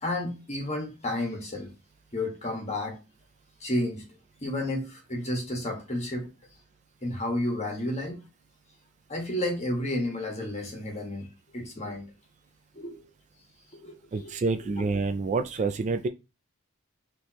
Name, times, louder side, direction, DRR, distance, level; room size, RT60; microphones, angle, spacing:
voice 1, 0.0-1.7 2.1-3.0 3.6-4.1 4.4-6.3 7.0-8.2 9.1-12.1 12.7-13.0 13.7-14.4, left 1 dB, 30° left, 1.5 m, -31 dB
voice 2, 14.1-16.1, right 3 dB, 35° right, 0.3 m, -27 dB
4.4 x 3.4 x 3.0 m
head